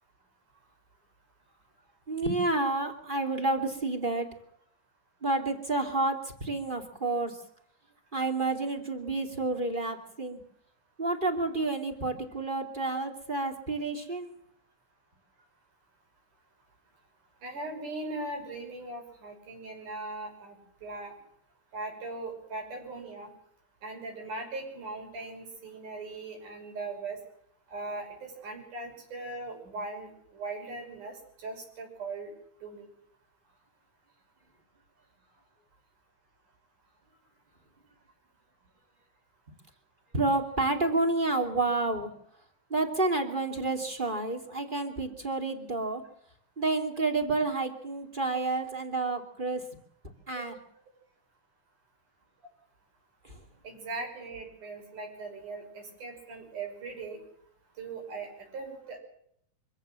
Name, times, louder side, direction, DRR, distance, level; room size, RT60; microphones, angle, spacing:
voice 1, 2.1-4.3 5.2-7.4 8.1-10.4 11.0-14.3 40.1-42.1 42.7-46.0 46.6-49.6 50.3-50.6 53.2-53.4, right 2 dB, 15° right, 4 dB, 2.7 m, -29 dB
voice 2, 17.4-21.2 21.7-23.3 23.8-27.2 27.7-32.3 32.6-32.9 50.4-50.5 53.6-57.2 57.8-59.0, right 3 dB, 80° right, 2 dB, 7.5 m, -39 dB
25.0 x 15.5 x 7.7 m, 0.70 s
omnidirectional pair, 3.6 m